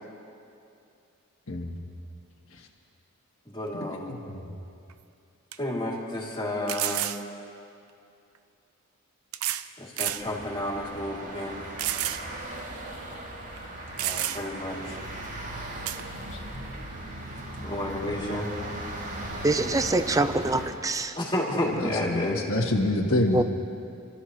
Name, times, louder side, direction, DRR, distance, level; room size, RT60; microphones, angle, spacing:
voice 1, 1.5-1.8 4.1-4.5 16.3-16.4 21.7-23.4, left 1 dB, 65° left, 1 dB, 1.4 m, -27 dB
voice 2, 3.4-4.2 5.6-7.1 9.8-11.6 14.0-15.0 17.6-18.5 21.1-22.4, left 1 dB, 20° left, -4 dB, 3.1 m, -31 dB
sound 1, 4.9-5.0 5.5-5.6 6.7-7.2 8.4-8.5 9.3-9.7 10.0-10.3 10.8-10.9 11.8-12.2 12.6-12.7 13.6-13.7 14.0-14.6 15.9-16.0, right 12 dB, 80° right, 0.6 m, -30 dB
sound 2, 10.2-20.7, right 1 dB, 50° right, 3.7 m, -38 dB
voice 3, 19.4-21.1 23.3-23.4, right 2 dB, 15° right, 10 dB, 0.5 m, -24 dB
29.5 x 13.5 x 3.3 m, 2.6 s
head